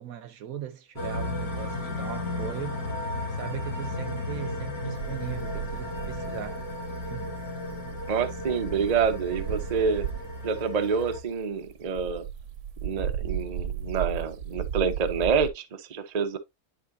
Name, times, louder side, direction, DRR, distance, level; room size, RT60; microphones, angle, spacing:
voice 1, 0.0-2.8 3.3-6.6 7.1-7.4, right 10 dB, 65° right, 1.1 m, -39 dB
sound 1, 1.0-11.2, left 2 dB, 70° left, 2.2 m, -34 dB
sound 2, 5.0-10.4 10.9-15.5, right 9 dB, 85° right, 1.5 m, -35 dB
voice 2, 8.1-10.0 10.4-12.3 12.8-16.4, right 6 dB, 35° right, 0.7 m, -27 dB
10.0 x 4.7 x 2.6 m
omnidirectional pair, 1.7 m